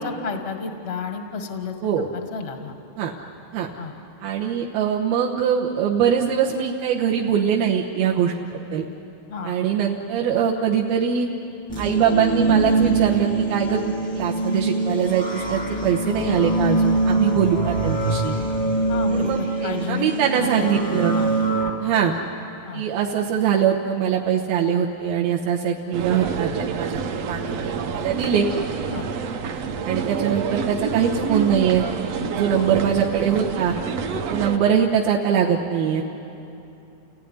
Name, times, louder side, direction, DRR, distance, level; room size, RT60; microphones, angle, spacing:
voice 1, 0.0-1.7 2.1-2.7 3.8-3.9 9.3-9.5 18.9-20.1 20.4-21.3 22.6-22.8 28.9-29.1 32.5-32.8, left 6 dB, 85° left, 4 dB, 0.5 m, -32 dB
voice 2, 4.2-8.3 8.7-8.8 9.4-11.3 11.8-18.4 19.1-21.1 21.8-22.1 22.7-28.5 29.8-31.8 32.3-33.8 34.3-36.0, right 8 dB, 85° right, -2 dB, 3.0 m, -22 dB
sound 1, 11.7-21.7, right 3 dB, 15° left, 0.6 m, -23 dB
sound 2, 25.9-34.6, right 5 dB, 70° right, 1.5 m, -28 dB
29.5 x 17.5 x 10.0 m, 2.8 s
omnidirectional pair, 4.2 m